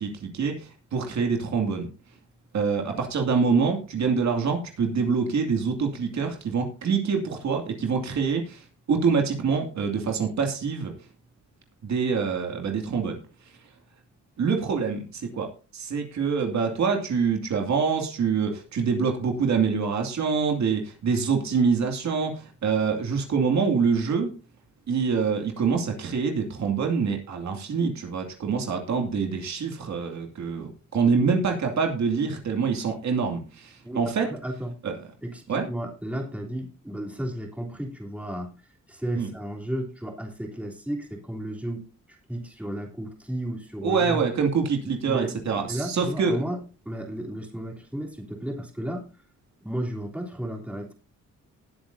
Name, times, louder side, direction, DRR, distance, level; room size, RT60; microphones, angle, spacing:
voice 1, 0.0-1.9 2.5-10.9 11.8-13.2 14.4-24.3 24.9-34.3 34.8-34.9 35.5-35.7 39.1-39.3 43.8-46.4, right 5 dB, 65° right, 3 dB, 2.5 m, -25 dB
voice 2, 33.8-34.8 35.2-38.5 38.9-41.8 42.3-44.2 44.8-46.6 46.8-49.1 49.6-50.9, right 1 dB, 5° right, -1 dB, 3.4 m, -33 dB
19.5 x 8.5 x 2.7 m, 0.34 s
cardioid pair, 130°, 30 cm